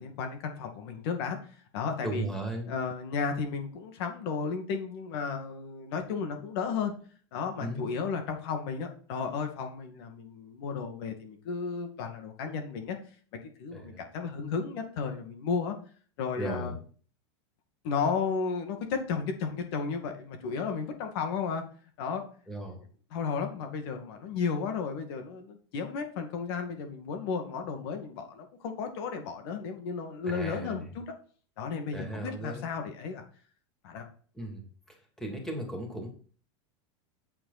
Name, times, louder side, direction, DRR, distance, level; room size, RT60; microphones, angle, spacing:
voice 1, 0.0-1.4 1.7-2.3 2.7-6.9 7.3-13.0 13.6-15.7 16.2-16.7 17.8-21.6 22.0-22.2 23.1-31.0 31.6-33.2 33.8-34.1, left 5 dB, 60° left, 5 dB, 2.2 m, -33 dB
voice 2, 2.0-2.7 7.6-7.9 13.7-14.0 16.4-16.8 22.5-22.8 30.2-30.8 31.9-32.7 34.3-34.6 35.2-36.1, right 1 dB, 5° left, 1 dB, 2.8 m, -36 dB
9.4 x 8.6 x 4.2 m, 0.42 s
supercardioid pair, 150°, 15 cm